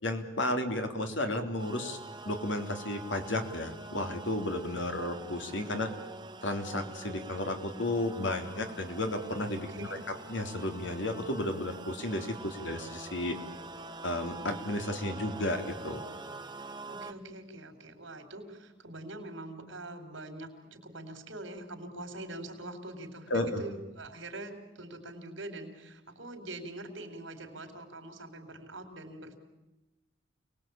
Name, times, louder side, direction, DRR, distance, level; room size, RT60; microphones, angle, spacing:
voice 1, 0.0-2.0 2.2-6.0 6.4-13.4 14.0-16.0 23.3-23.6, left 1 dB, 75° left, 5 dB, 3.2 m, -33 dB
sound 1, 1.6-17.1, right 2 dB, 25° right, 1.2 m, -45 dB
voice 2, 9.7-10.0 16.9-29.4, right 2 dB, 75° right, 7 dB, 4.2 m, -44 dB
28.0 x 20.0 x 8.8 m, 1.0 s
head